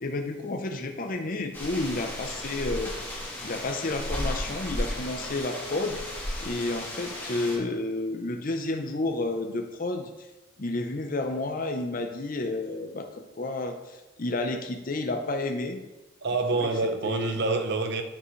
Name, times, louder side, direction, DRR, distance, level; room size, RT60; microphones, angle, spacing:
voice 1, 0.0-2.9 3.4-10.1 10.6-15.8 16.5-16.7 17.0-17.4, left 2 dB, 45° left, 0.7 m, -31 dB
sound 1, 1.5-7.6, left 1 dB, 10° left, 1.5 m, -34 dB
voice 2, 16.2-18.0, right 3 dB, 55° right, 0.6 m, -27 dB
9.8 x 6.0 x 3.2 m
head